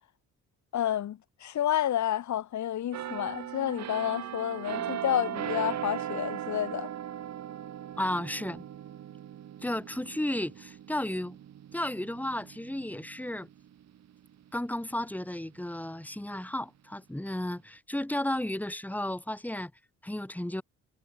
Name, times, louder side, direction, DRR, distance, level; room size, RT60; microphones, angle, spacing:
voice 1, 0.7-6.9, left 11 dB, 70° left, 3.7 m, -30 dB
sound 1, 2.9-14.5 14.9-15.1, right 10 dB, 60° right, 2.1 m, -39 dB
voice 2, 8.0-8.7 9.6-11.4 11.7-13.5 14.5-19.7 20.0-20.6, left 1 dB, 5° left, 4.2 m, -33 dB
cardioid pair, 90°, 30 cm